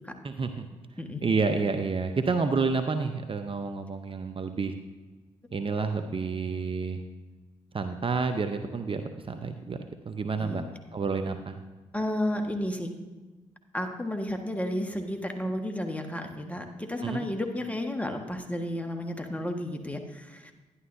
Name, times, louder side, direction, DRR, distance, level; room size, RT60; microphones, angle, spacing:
voice 1, 0.2-0.6 1.2-4.7 5.5-7.0 7.7-9.8 10.1-10.6 10.9-11.6 17.0-17.3, right 4 dB, 35° right, 7 dB, 0.7 m, -29 dB
voice 2, 11.9-12.9 13.7-20.5, left 1 dB, 10° left, 4 dB, 1.4 m, -32 dB
11.0 x 11.0 x 2.7 m, 1.2 s
hypercardioid pair, 40°, 15 cm